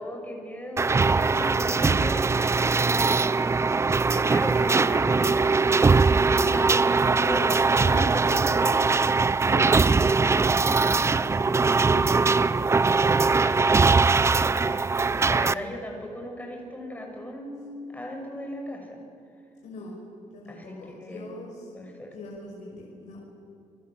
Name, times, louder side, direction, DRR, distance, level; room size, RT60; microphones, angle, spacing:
voice 1, 0.0-3.4 4.1-5.7 6.2-8.4 13.1-13.9 14.3-19.0 20.5-21.3 21.7-22.1, left 1 dB, 15° left, 2 dB, 6.7 m, -37 dB
sound 1, 0.8-15.5, right 4 dB, 20° right, 0.5 m, -21 dB
voice 2, 6.4-6.7 8.3-8.8 9.4-10.2 10.6-13.1 15.5-15.7 19.6-20.0 20.3-21.7 22.1-23.2, left 2 dB, 80° left, -2 dB, 6.0 m, -41 dB
29.5 x 22.5 x 7.7 m, 2.6 s
cardioid pair, 120°, 12 cm